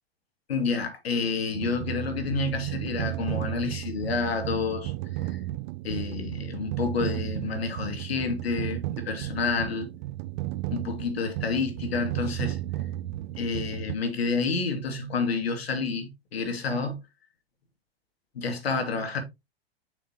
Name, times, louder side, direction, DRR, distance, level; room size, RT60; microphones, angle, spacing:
voice 1, 0.5-4.9 5.2-5.4 5.8-9.9 10.7-12.6 13.4-17.0 18.3-19.2, left 4 dB, 85° left, 2.4 m, -29 dB
sound 1, 1.5-14.0, right 15 dB, 55° right, 0.5 m, -34 dB
7.1 x 6.0 x 2.9 m
hypercardioid pair, 100°, 30 cm